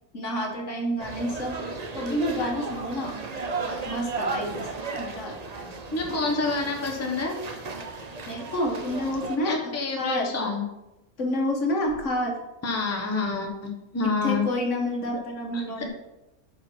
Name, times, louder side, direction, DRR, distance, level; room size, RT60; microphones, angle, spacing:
voice 1, 0.1-1.6 1.9-3.2 3.8-4.7 5.0-5.7 8.3-10.3 11.2-12.4 14.2-15.9, equal, 55° left, 1 dB, 1.6 m, -29 dB
sound 1, 1.0-9.4, right 3 dB, 35° right, 0.7 m, -35 dB
voice 2, 5.9-7.4 9.4-10.6 12.6-14.4 15.5-15.9, left 3 dB, 10° left, 1 dB, 1.0 m, -28 dB
8.5 x 5.7 x 4.5 m, 0.97 s
omnidirectional pair, 1.6 m